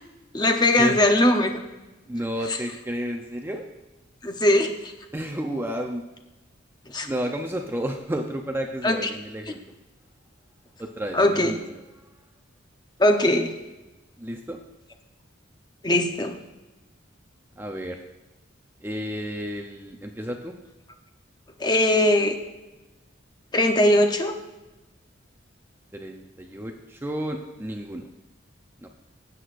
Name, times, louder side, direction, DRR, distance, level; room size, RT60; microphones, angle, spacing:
voice 1, 0.3-1.6 2.5-2.6 4.2-4.9 6.9-7.1 8.8-9.1 11.1-11.5 13.0-13.5 15.8-16.3 21.6-22.3 23.5-24.3, left 1 dB, 20° left, 4 dB, 0.7 m, -20 dB
voice 2, 2.1-3.6 5.1-6.0 7.0-9.6 10.8-11.7 14.2-14.6 17.6-18.0 18.8-20.5 25.9-28.0 28.8-28.9, equal, 10° right, 3 dB, 0.5 m, -31 dB
16.5 x 7.8 x 2.5 m, 1.1 s
head